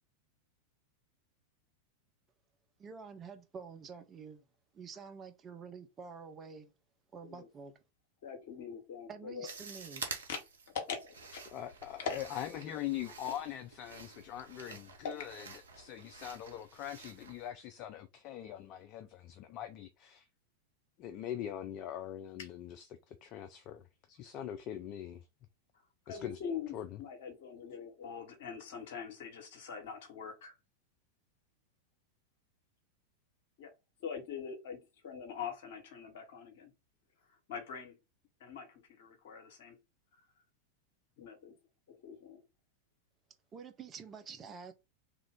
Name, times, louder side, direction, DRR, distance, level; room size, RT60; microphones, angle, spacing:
voice 1, 2.8-4.4 4.7-6.7 7.1-7.7 9.1-10.0 43.5-44.7, right 5 dB, 25° right, 0.6 m, -48 dB
voice 2, 8.2-9.5 10.3-10.4 10.7-11.4 12.0-12.2 15.0-15.1 22.4-22.5 26.1-30.5 33.6-33.7 34.0-36.7 37.5-38.0 38.4-39.8 41.2-41.5 42.0-42.4, left 6 dB, 55° left, 1.1 m, -43 dB
sound 1, 9.5-17.5, right 4 dB, 65° right, 0.7 m, -49 dB
voice 3, 11.5-15.5 15.8-20.3 21.0-23.8 24.1-25.2 26.1-26.4 26.7-26.9, left 11 dB, 40° left, 0.4 m, -42 dB
3.1 x 2.4 x 3.5 m
figure-of-eight pair, 90°, 0 cm